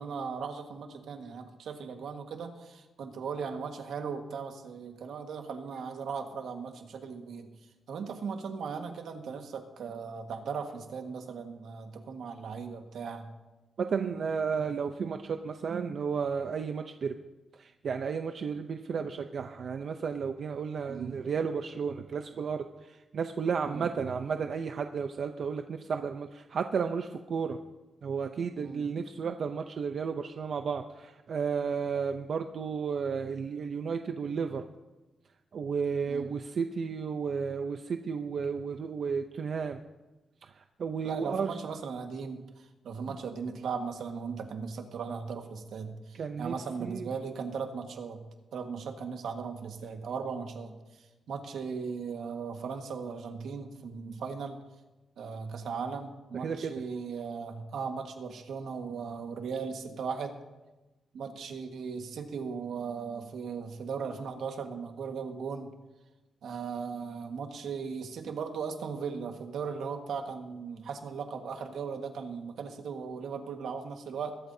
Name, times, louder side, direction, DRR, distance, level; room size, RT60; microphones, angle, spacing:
voice 1, 0.0-7.5 7.9-13.3 20.9-21.2 23.7-23.9 28.6-28.9 36.1-36.3 41.0-48.2 48.5-50.8 51.3-54.6 55.2-60.3 61.1-65.7 66.4-74.4, right 5 dB, 75° right, 4 dB, 1.5 m, -37 dB
voice 2, 13.8-17.1 17.6-27.6 28.0-34.7 35.5-39.8 40.4-41.6 43.1-43.2 46.2-46.5 46.8-47.1 56.4-56.7, right 6 dB, 50° right, 6 dB, 0.6 m, -33 dB
22.0 x 12.5 x 2.7 m, 1.1 s
wide cardioid pair, 165°, 0 cm